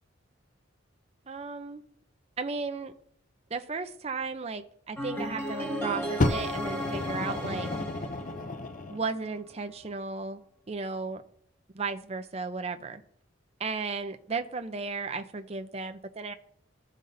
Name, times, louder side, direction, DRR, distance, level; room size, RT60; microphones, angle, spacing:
voice 1, 1.3-1.8 2.4-2.9 3.5-7.7 8.9-10.4 10.7-11.2 11.7-13.0 13.6-16.3, right 4 dB, 30° right, 7 dB, 0.5 m, -35 dB
sound 1, 5.0-9.0, equal, 10° left, 1.6 m, -35 dB
Fire, 6.2-9.0 9.8-9.9, left 2 dB, 40° left, 0.5 m, -31 dB
14.0 x 5.3 x 2.6 m, 0.66 s
head